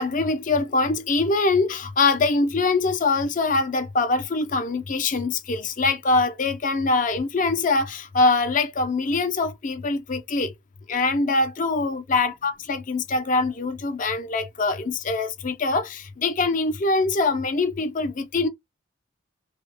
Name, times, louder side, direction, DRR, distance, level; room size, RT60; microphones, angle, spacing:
voice 1, 0.0-10.5 10.9-18.5, left 3 dB, 40° left, 0.5 m, -23 dB
2.8 x 2.3 x 3.2 m
head